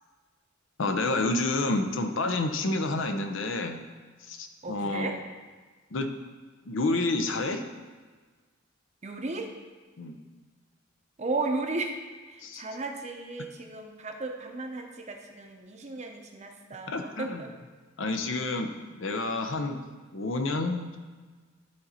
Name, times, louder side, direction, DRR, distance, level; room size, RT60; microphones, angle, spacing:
voice 1, 0.8-3.8 4.3-5.1 5.9-6.1 6.6-7.6 10.0-10.2 12.4-12.6 16.9-17.4 18.0-19.8 20.1-21.0, left 2 dB, 70° left, 6 dB, 0.7 m, -29 dB
voice 2, 4.6-5.2 9.0-9.5 11.2-12.0 12.3-17.5, right 3 dB, 35° right, 3 dB, 0.8 m, -35 dB
11.5 x 4.0 x 4.3 m, 1.4 s
head